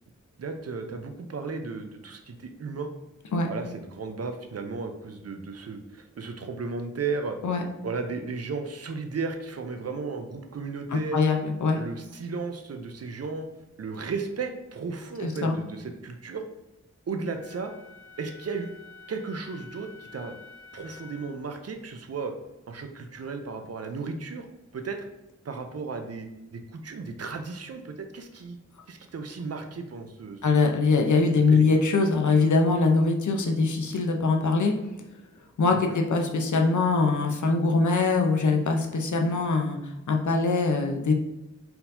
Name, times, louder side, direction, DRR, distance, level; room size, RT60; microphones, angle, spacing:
voice 1, 0.4-2.9 3.5-7.4 7.8-11.2 11.7-13.5 13.8-16.4 17.1-17.7 18.2-18.7 19.1-20.4 20.7-22.3 22.7-24.5 24.7-25.1 25.4-28.6 28.9-30.6 31.5-31.7 35.7-36.0, right 4 dB, 55° right, 6 dB, 0.6 m, -35 dB
voice 2, 11.1-11.8 15.2-15.6 30.4-34.7 35.6-41.1, left 3 dB, 80° left, 3 dB, 0.7 m, -23 dB
Wind instrument woodwind instrument, 17.4-21.4, left 5 dB, 15° right, 1.2 m, -49 dB
4.3 x 3.9 x 2.7 m, 0.95 s
wide cardioid pair, 100°, 30 cm